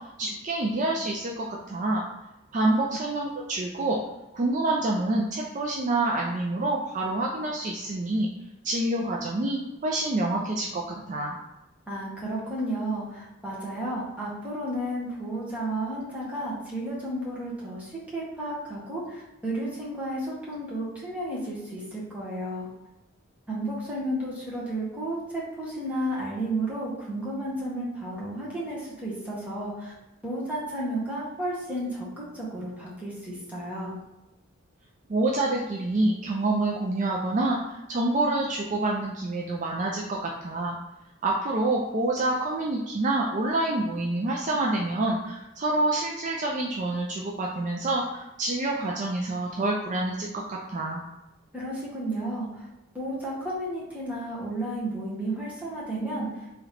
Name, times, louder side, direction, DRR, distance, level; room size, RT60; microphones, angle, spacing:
voice 1, 0.2-2.1 2.5-4.0 4.3-8.3 8.6-11.3 35.1-37.6 37.9-40.8 41.2-51.0, right 2 dB, 35° right, -2 dB, 0.4 m, -27 dB
voice 2, 11.9-22.7 23.5-29.9 30.2-34.0 51.5-52.7 52.9-56.5, right 1 dB, 5° right, -7 dB, 1.2 m, -32 dB
3.7 x 3.0 x 3.3 m, 0.98 s
head